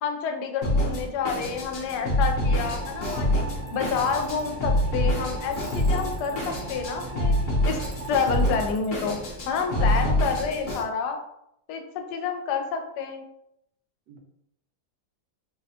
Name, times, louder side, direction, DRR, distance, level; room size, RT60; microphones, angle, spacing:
voice 1, 0.0-3.4 3.7-7.3 7.6-7.8 8.1-9.2 9.5-11.2 11.7-13.2, left 5 dB, 80° left, 5 dB, 1.1 m, -29 dB
Drum kit, 0.6-10.8, left 1 dB, 45° left, 0.6 m, -26 dB
sound 1, 2.4-8.7, right 3 dB, 65° right, 1.3 m, -39 dB
Tools, 3.7-4.4 5.5-6.6 7.8-8.9, right 3 dB, 40° right, 0.9 m, -50 dB
voice 2, 9.7-10.2 14.1-14.2, right 5 dB, 90° right, 4 dB, 1.3 m, -40 dB
3.9 x 2.1 x 2.7 m, 0.78 s
omnidirectional pair, 1.8 m